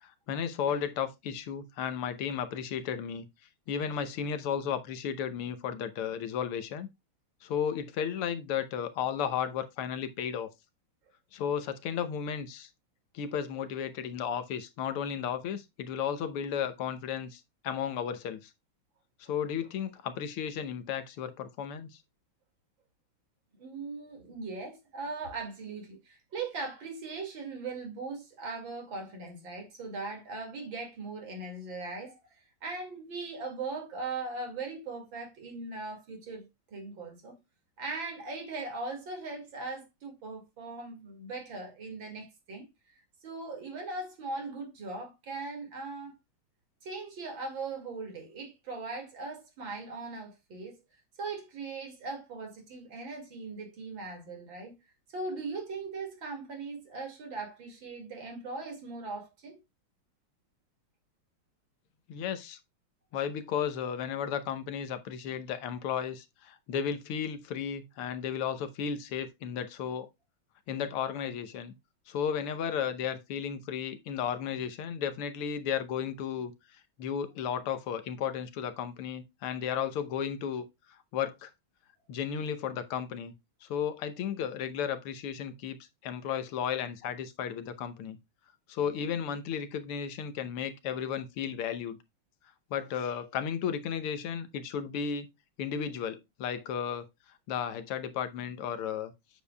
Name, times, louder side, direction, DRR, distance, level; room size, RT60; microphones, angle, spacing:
voice 1, 0.0-3.3 3.7-6.9 7.4-10.5 11.3-12.7 13.1-18.5 19.2-21.9 62.1-62.6 63.1-70.1 70.7-71.7 72.1-76.5 77.0-80.7 81.1-81.5 82.1-83.3 83.6-85.8 86.0-88.2 88.7-92.0 92.7-95.3 95.6-97.1 97.5-99.1, left 8 dB, 90° left, 1.8 m, -34 dB
voice 2, 23.6-32.2 32.6-37.3 37.8-42.7 43.2-46.2 46.8-50.8 51.2-54.7 55.1-59.6, right 3 dB, 65° right, 2.9 m, -39 dB
8.4 x 7.2 x 2.3 m
omnidirectional pair, 2.4 m